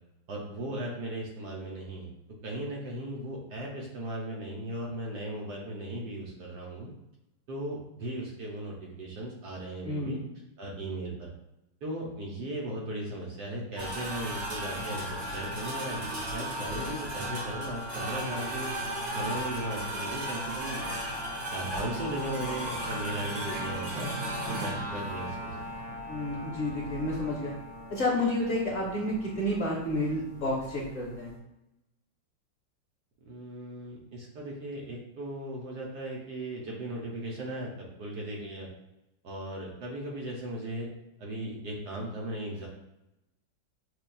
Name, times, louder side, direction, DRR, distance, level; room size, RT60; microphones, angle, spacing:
voice 1, 0.3-2.1 2.4-6.9 7.5-10.2 10.6-11.3 11.8-16.1 16.3-18.7 19.1-24.1 24.5-25.6 33.2-38.7 39.2-40.9 41.2-42.7, right 1 dB, 65° right, -2 dB, 1.1 m, -37 dB
voice 2, 9.8-10.2 26.1-27.5 27.9-31.3, left 1 dB, 55° left, -5 dB, 1.0 m, -30 dB
sound 1, 13.8-31.4, equal, 85° right, 2.0 m, -36 dB
6.6 x 2.3 x 2.3 m, 0.91 s
omnidirectional pair, 2.2 m